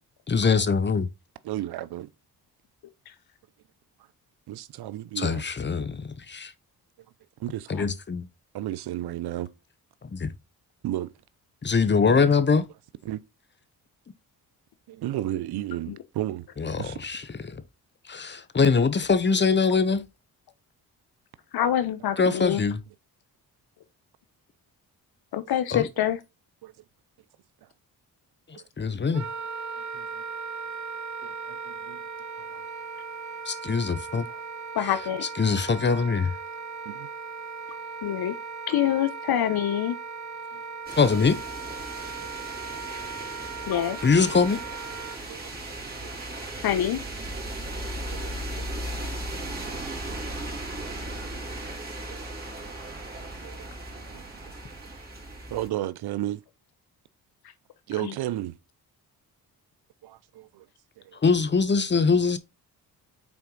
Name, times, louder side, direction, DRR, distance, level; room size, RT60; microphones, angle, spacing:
voice 1, 0.3-1.1 5.2-6.5 7.7-8.3 10.0-10.3 11.6-12.7 16.6-17.6 18.1-20.1 22.2-22.8 25.7-25.9 28.5-29.3 33.4-34.3 34.8-34.9 35.2-36.3 41.0-41.4 44.0-44.6 61.2-62.4, left 5 dB, 30° left, 0.9 m, -23 dB
voice 2, 1.4-2.1 4.5-5.4 7.4-7.7 8.5-9.5 10.8-11.1 13.0-13.2 14.9-16.5 16.8-17.1 26.6-26.7 28.5-29.0 29.9-30.2 31.2-32.1 32.4-32.6 33.6-33.9 34.3-34.4 36.8-37.1 40.5-40.6 41.9-42.3 42.9-43.0 44.1-44.2 45.3-45.5 46.0-46.1 46.7-46.8 48.1-48.3 48.6-48.7 49.6-49.8 50.1-50.2 50.8-50.9 51.4-52.7 53.2-53.7 54.0-54.6 55.5-56.4 57.9-58.6 60.0-60.7 61.0-61.2, right 14 dB, 80° right, 0.7 m, -34 dB
voice 3, 21.5-22.6 25.3-26.2 34.8-35.2 38.0-38.3 38.7-40.0 43.7-44.0 46.6-47.0 58.0-58.1, left 11 dB, 75° left, 1.0 m, -25 dB
Wind instrument woodwind instrument, 29.1-45.2, right 5 dB, 45° right, 1.0 m, -38 dB
sound 1, 40.9-55.7, right 1 dB, 25° right, 3.3 m, -36 dB
6.0 x 4.4 x 3.9 m
cardioid pair, 75°, 38 cm